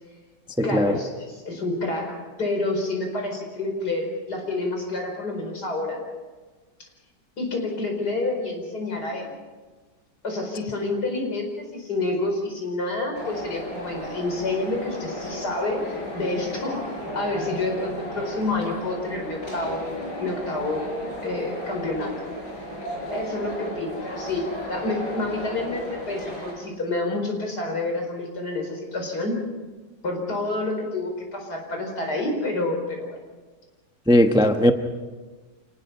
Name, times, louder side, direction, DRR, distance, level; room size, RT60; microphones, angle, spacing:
voice 1, 0.6-6.0 7.4-9.3 10.2-15.8 16.1-16.8 17.1-19.9 20.2-20.9 21.2-22.1 23.1-29.4 30.0-33.2, left 2 dB, 65° left, 2 dB, 5.3 m, -28 dB
sound 1, 13.1-26.5, equal, 85° left, 6.4 m, -34 dB
voice 2, 34.1-34.7, equal, 5° right, 6 dB, 0.7 m, -17 dB
27.0 x 19.5 x 5.6 m, 1.3 s
omnidirectional pair, 1.9 m